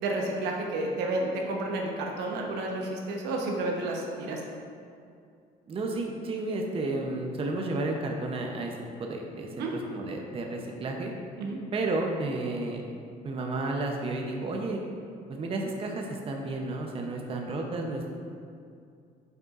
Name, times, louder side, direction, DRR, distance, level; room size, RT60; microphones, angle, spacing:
voice 1, 0.0-4.4 9.6-9.7 11.4-11.6, right 2 dB, 85° right, 0 dB, 0.9 m, -31 dB
voice 2, 5.7-8.7 9.0-11.1 11.7-12.8 13.2-14.8 15.3-18.1, right 2 dB, 35° right, 1 dB, 0.6 m, -32 dB
7.7 x 5.0 x 2.4 m, 2.4 s
cardioid pair, 110°, 17 cm